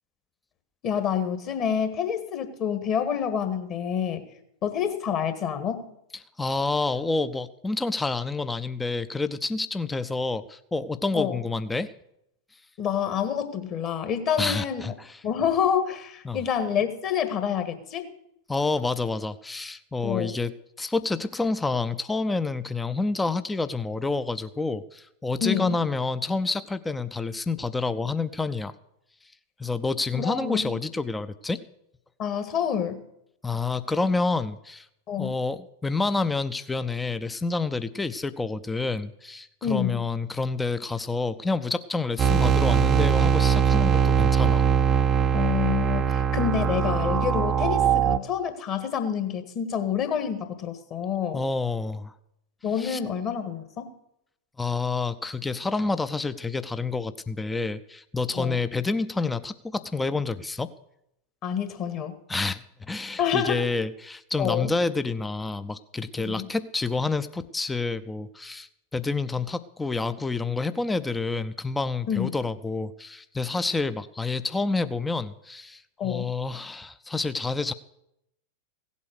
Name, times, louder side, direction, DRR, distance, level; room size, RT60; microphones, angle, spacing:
voice 1, 0.8-4.2 4.6-5.9 11.1-11.4 12.8-14.8 15.2-18.1 20.0-20.4 25.4-25.8 30.1-30.7 32.2-33.0 35.1-35.3 39.6-40.1 45.3-51.4 52.6-53.9 58.3-58.6 61.4-62.2 63.2-63.6 64.4-64.7 66.2-66.5 72.1-72.3 76.0-76.2, left 8 dB, 35° left, 9 dB, 1.6 m, -28 dB
voice 2, 6.4-11.9 14.4-15.2 16.2-16.4 18.5-20.5 20.8-28.7 29.6-31.6 33.4-34.9 35.2-44.6 51.3-52.2 52.8-53.0 54.6-60.7 62.3-77.7, left 3 dB, 10° left, 13 dB, 0.5 m, -28 dB
sound 1, 42.2-48.2, right 7 dB, 25° right, 0.7 m, -21 dB
16.5 x 8.2 x 6.5 m, 0.79 s
figure-of-eight pair, 90°, 0 cm